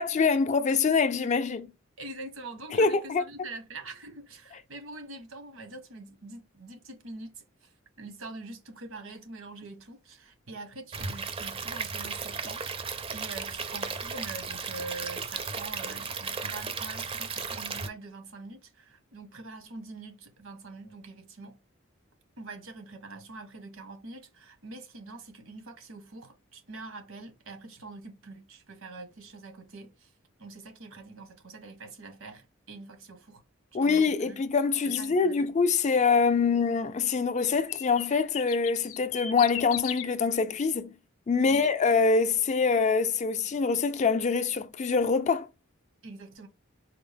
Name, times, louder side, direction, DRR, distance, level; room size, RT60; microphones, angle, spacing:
voice 1, 0.0-1.7 2.8-3.2 33.7-40.9 41.3-45.5, left 5 dB, 35° left, 0.4 m, -25 dB
voice 2, 2.0-7.7 8.0-21.6 22.4-30.1 30.4-33.4 33.8-34.4 34.9-35.5 41.4-41.7 46.0-46.5, right 3 dB, 80° right, 1.0 m, -44 dB
Stream / Liquid, 10.9-17.9, right 5 dB, 30° right, 0.4 m, -35 dB
sound 1, 34.9-35.1 37.4-40.1, left 10 dB, 90° left, 0.5 m, -37 dB
4.3 x 2.0 x 3.4 m
head